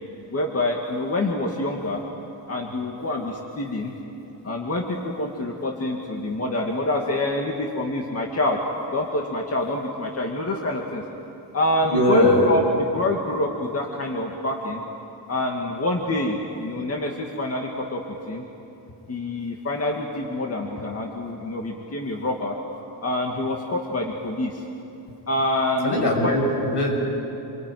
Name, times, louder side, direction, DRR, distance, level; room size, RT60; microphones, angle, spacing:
voice 1, 0.3-2.0 2.5-3.9 4.4-8.6 8.9-11.0 11.5-14.8 15.3-18.0 18.3-18.4 19.1-22.5 23.0-24.6 25.3-26.3, left 1 dB, 35° left, 0 dB, 2.2 m, -26 dB
voice 2, 11.8-12.5 25.8-27.0, left 1 dB, 70° left, 0 dB, 7.4 m, -21 dB
28.0 x 21.5 x 9.4 m, 2.9 s
wide cardioid pair, 115°, 42 cm